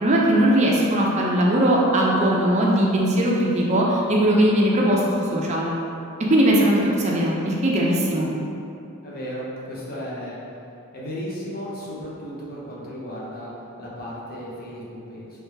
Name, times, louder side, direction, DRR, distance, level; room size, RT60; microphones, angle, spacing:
voice 1, 0.0-5.0 5.3-5.7 6.2-8.3, right 1 dB, 30° right, -3 dB, 0.4 m, -19 dB
voice 2, 9.0-10.4 10.9-13.5 13.8-15.4, equal, 40° left, -6 dB, 0.8 m, -34 dB
3.3 x 3.2 x 3.2 m, 2.7 s
head